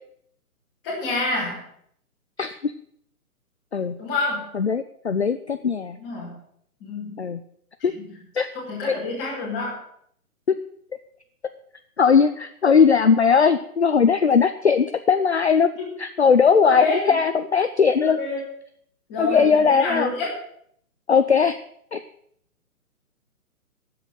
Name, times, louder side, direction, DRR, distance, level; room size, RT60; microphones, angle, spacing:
voice 1, 0.8-1.7 4.0-4.4 6.0-6.4 6.8-7.2 8.5-9.8 15.8-15.9 16.6-17.2 18.0-18.5 19.1-20.3, left 2 dB, 10° left, -5 dB, 2.5 m, -28 dB
voice 2, 2.4-2.7 3.7-3.9 4.5-6.0 7.2-7.4 7.8-7.9 8.4-8.5 12.0-15.7 16.0-18.2 19.2-20.1 21.1-21.6 21.9-22.0, left 6 dB, 45° left, 9 dB, 0.5 m, -19 dB
9.8 x 7.9 x 9.2 m, 0.67 s
hypercardioid pair, 180°, 45 cm